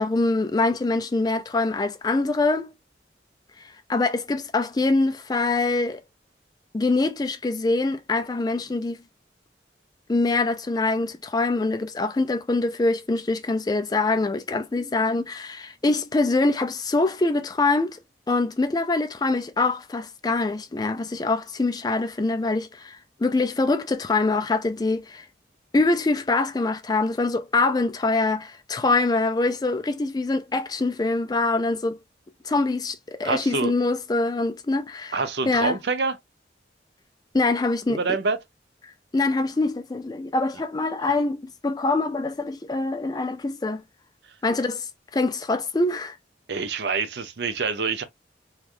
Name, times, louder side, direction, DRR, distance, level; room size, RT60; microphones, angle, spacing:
voice 1, 0.0-2.7 3.9-6.0 6.7-9.0 10.1-18.0 18.3-25.2 25.7-32.0 32.4-35.2 35.5-35.8 37.3-38.0 39.1-43.8 44.4-44.9 45.1-46.2, left 3 dB, 20° left, 0.3 m, -24 dB
voice 2, 33.2-33.7 35.1-36.2 37.9-38.4 41.0-41.1 46.5-48.0, right 4 dB, 70° right, 0.7 m, -26 dB
3.2 x 2.3 x 2.4 m
head